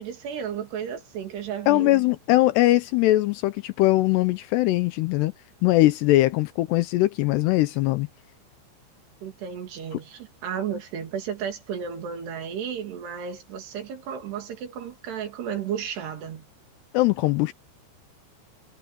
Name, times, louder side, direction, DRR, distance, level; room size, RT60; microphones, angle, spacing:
voice 1, 0.0-2.0 9.2-16.5, right 8 dB, 65° right, 4.6 m, -33 dB
voice 2, 1.7-5.3 5.6-8.1 16.9-17.5, left 17 dB, 80° left, 2.6 m, -21 dB
omnidirectional pair, 5.2 m